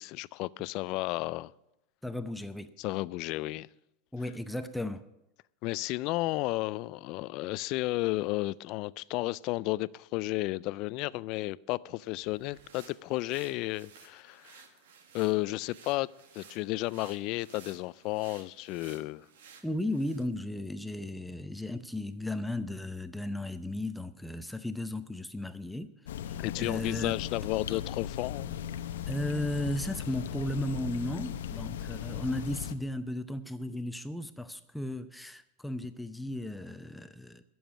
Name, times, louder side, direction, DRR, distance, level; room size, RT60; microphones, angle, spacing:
voice 1, 0.0-1.5 2.8-3.7 5.6-14.6 15.1-19.3 26.4-28.5, left 19 dB, 55° left, 0.4 m, -33 dB
voice 2, 2.0-2.7 4.1-5.0 19.6-25.9 26.3-27.2 27.7-27.8 29.1-37.4, left 1 dB, 5° left, 0.7 m, -35 dB
sound 1, 12.1-20.3, right 6 dB, 85° right, 1.7 m, -56 dB
sound 2, 26.0-32.7, left 9 dB, 90° left, 0.7 m, -37 dB
12.5 x 7.1 x 9.4 m
supercardioid pair, 120°, 0 cm